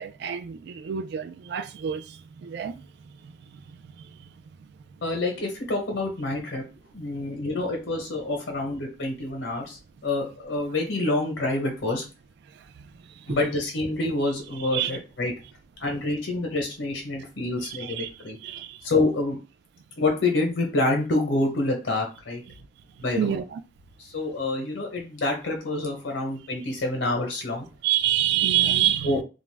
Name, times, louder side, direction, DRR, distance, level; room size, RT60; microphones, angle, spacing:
voice 1, 0.0-2.8 13.3-13.4 14.6-14.9 17.7-18.1 18.4-18.8 23.2-23.6 27.8-29.2, right 11 dB, 60° right, 0.3 m, -27 dB
voice 2, 5.0-6.6 6.9-9.8 10.0-12.0 13.3-15.3 15.8-18.4 18.8-19.4 20.0-22.4 23.0-23.4 24.1-27.7 29.0-29.2, left 2 dB, 80° left, 0.8 m, -27 dB
2.4 x 2.1 x 3.2 m
head